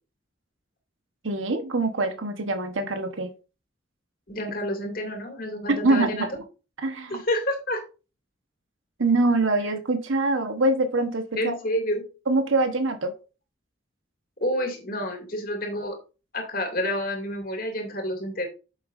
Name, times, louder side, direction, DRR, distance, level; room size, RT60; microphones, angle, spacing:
voice 1, 1.2-3.3 5.7-6.3 6.8-7.2 9.0-11.5 12.3-13.1, right 2 dB, 90° right, 7 dB, 1.1 m, -24 dB
voice 2, 4.3-6.3 7.1-7.8 11.4-12.0 14.4-16.0 16.3-18.5, left 1 dB, 45° left, 3 dB, 2.4 m, -29 dB
8.6 x 6.8 x 2.6 m, 0.32 s
head